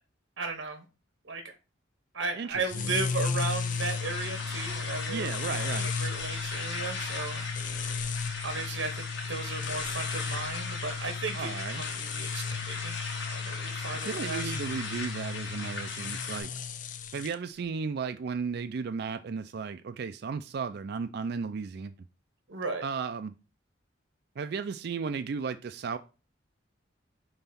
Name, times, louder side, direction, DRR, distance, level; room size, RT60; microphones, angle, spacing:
voice 1, 0.4-0.8 1.2-1.4 2.1-7.4 8.4-11.5 11.7-12.9 13.3-14.5 22.5-22.8, right 3 dB, 85° right, 1.0 m, -35 dB
voice 2, 2.4-3.0 5.1-5.9 11.3-11.8 13.9-16.5 17.1-21.9 22.8-23.3 24.4-26.0, right 5 dB, 55° right, 0.4 m, -35 dB
sound 1, 2.6-17.3, left 5 dB, 45° left, 0.6 m, -35 dB
sound 2, 3.3-16.4, left 4 dB, 70° left, 1.5 m, -38 dB
5.5 x 4.0 x 5.7 m
head